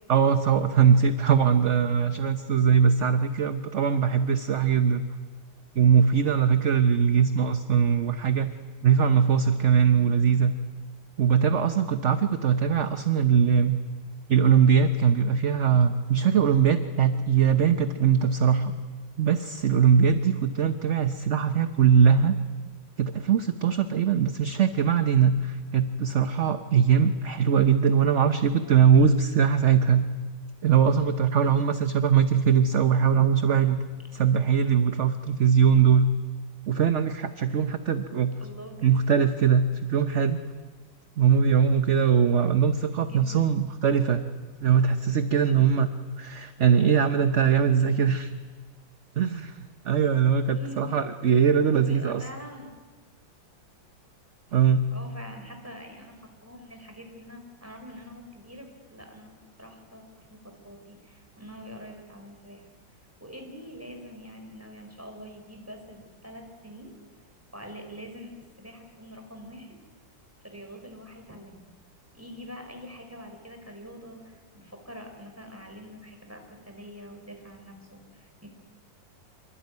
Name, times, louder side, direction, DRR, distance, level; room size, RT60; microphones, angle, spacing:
voice 1, 0.1-5.0 5.7-8.5 8.8-10.5 11.2-13.8 14.3-18.7 19.2-22.4 23.0-30.1 30.6-33.8 34.1-36.1 36.7-38.4 38.8-40.4 41.2-44.2 44.6-45.9 46.2-48.3 49.2-52.2 54.5-54.9, right 7 dB, 45° right, 9 dB, 1.1 m, -21 dB
voice 2, 32.8-33.2 38.4-38.9 43.0-43.4 50.5-50.8 51.7-52.7 54.9-62.7 63.2-67.0 67.5-69.8 70.4-71.7 72.1-78.5, equal, 5° right, 3 dB, 4.7 m, -45 dB
26.0 x 24.0 x 9.5 m, 1.4 s
omnidirectional pair, 2.0 m